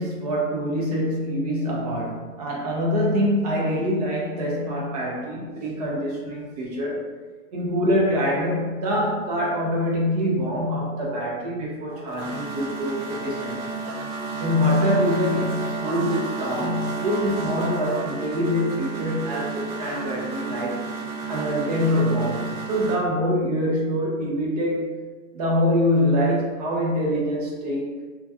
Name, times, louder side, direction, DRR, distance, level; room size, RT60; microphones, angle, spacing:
voice 1, 0.0-7.0 7.5-13.6 14.4-20.9 21.3-24.9 25.3-27.9, equal, 30° right, -3 dB, 0.4 m, -24 dB
sound 1, 11.9-23.0, right 3 dB, 85° right, 0.7 m, -31 dB
2.2 x 2.2 x 2.7 m, 1.4 s
hypercardioid pair, 145°, 42 cm